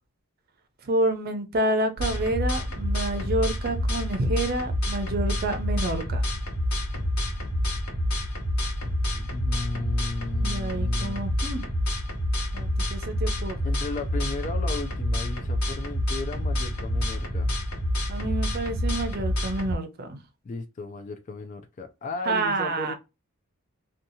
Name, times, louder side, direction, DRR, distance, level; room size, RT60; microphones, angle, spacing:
voice 1, 0.9-6.2 9.7-9.9 10.4-11.6 12.5-13.6 18.1-20.2 22.3-22.9, right 2 dB, 45° right, 0.5 m, -28 dB
sound 1, 2.0-19.8, left 1 dB, 80° left, 1.0 m, -28 dB
voice 2, 9.1-11.4 13.6-17.6 20.4-22.9, left 3 dB, 35° left, 0.3 m, -35 dB
2.7 x 2.3 x 2.7 m
head